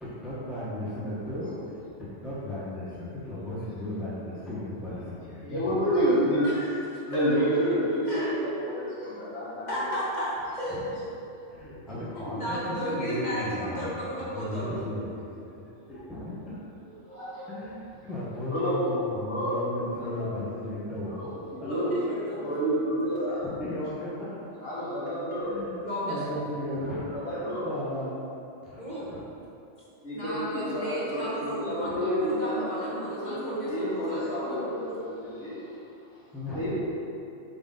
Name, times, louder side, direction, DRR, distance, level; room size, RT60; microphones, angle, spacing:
voice 1, 0.0-5.8 10.7-10.8 11.5-15.2 15.9-16.6 17.5-21.2 23.3-24.4 25.4-28.2 28.6-29.2 31.8-32.0 36.3-36.7, left 1 dB, ahead, -10 dB, 1.1 m, -36 dB
voice 2, 5.4-6.4 7.1-9.7 11.6-12.3 15.9-16.0 17.1-17.5 18.5-18.7 19.3-19.6 20.0-20.3 21.1-22.0 22.3-23.4 24.6-25.6 27.2-27.7 30.0-32.5 32.8-35.6 36.5-36.7, equal, 65° left, -9 dB, 1.9 m, -29 dB
voice 3, 9.7-11.0 12.2-14.9 21.6-22.4 25.8-26.4 28.8-29.1 30.1-34.7, equal, 35° left, -8 dB, 1.7 m, -34 dB
7.9 x 4.0 x 3.9 m, 2.8 s
omnidirectional pair, 1.3 m